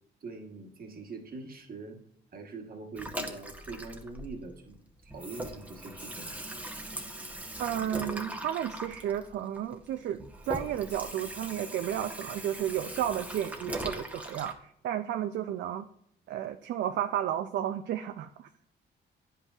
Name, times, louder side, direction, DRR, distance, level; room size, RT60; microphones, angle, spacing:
voice 1, 0.2-2.0 2.3-4.8 5.0-6.3, right 3 dB, 50° right, 3 dB, 1.2 m, -43 dB
Water tap faucet / Sink (filling or washing), 3.0-4.8 5.0-14.5, right 1 dB, 5° right, 0.8 m, -40 dB
voice 2, 7.6-15.9 16.3-18.5, right 10 dB, 65° right, 7 dB, 0.4 m, -33 dB
9.8 x 5.5 x 2.4 m, 0.71 s
cardioid pair, 90°, 20 cm